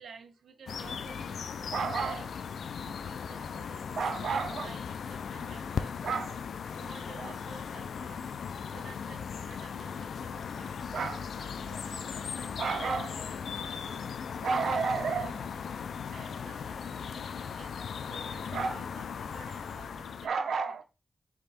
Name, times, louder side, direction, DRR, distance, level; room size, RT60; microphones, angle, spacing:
voice 1, 0.0-2.3 2.8-6.4 6.8-8.2 8.7-14.1 14.4-15.5 16.1-17.2 17.6-17.7 18.1-20.8, right 5 dB, 85° right, 0.6 m, -37 dB
sound 1, 0.7-20.3, left 6 dB, 85° left, 0.3 m, -38 dB
3.5 x 3.3 x 4.1 m
cardioid pair, 85°, 0 cm